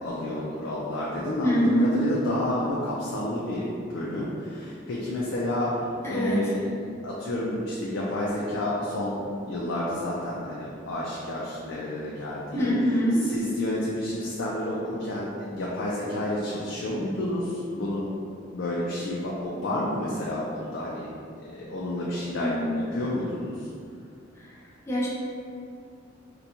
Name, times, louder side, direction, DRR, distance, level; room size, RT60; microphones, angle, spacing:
voice 1, 0.0-12.7 13.2-18.1 18.5-21.1 21.4-23.7, left 1 dB, 75° left, -5 dB, 0.4 m, -30 dB
voice 2, 1.4-2.0 6.0-6.5 12.5-13.2 22.4-23.1 24.4-24.5 24.9-25.1, equal, 15° left, -7 dB, 0.5 m, -24 dB
3.9 x 2.2 x 2.8 m, 2.4 s
head